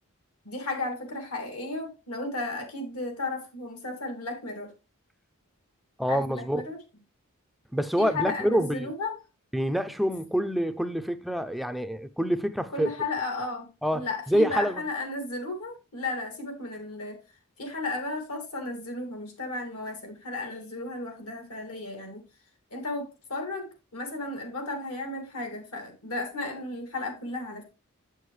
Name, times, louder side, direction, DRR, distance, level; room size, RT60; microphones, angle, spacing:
voice 1, 0.4-4.7 6.1-6.8 8.0-9.2 12.7-13.7 13.9-17.2 17.6-22.2 22.7-27.6, left 2 dB, 80° left, 2.4 m, -34 dB
voice 2, 6.0-6.6 7.7-8.9 9.5-12.9 13.8-14.8, equal, ahead, 0.4 m, -26 dB
7.8 x 6.4 x 3.1 m
head